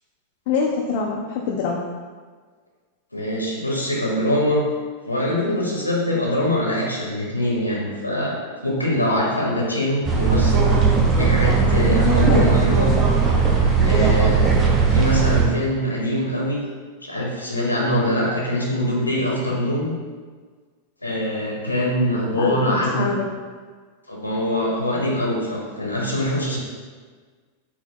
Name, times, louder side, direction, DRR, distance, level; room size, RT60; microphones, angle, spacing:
voice 1, 0.5-1.8 12.0-12.5 22.3-23.3, left 5 dB, 50° left, 0 dB, 0.4 m, -24 dB
voice 2, 3.1-4.6 5.0-8.3 8.6-10.7 11.2-12.9 13.8-14.4 14.9-16.6 17.0-19.9 21.0-23.1 24.1-26.6, left 1 dB, 85° left, -4 dB, 0.7 m, -23 dB
sound 1, 10.0-15.5, right 4 dB, 20° right, 0.6 m, -18 dB
4.5 x 2.1 x 3.7 m, 1.5 s
figure-of-eight pair, 90°, 0 cm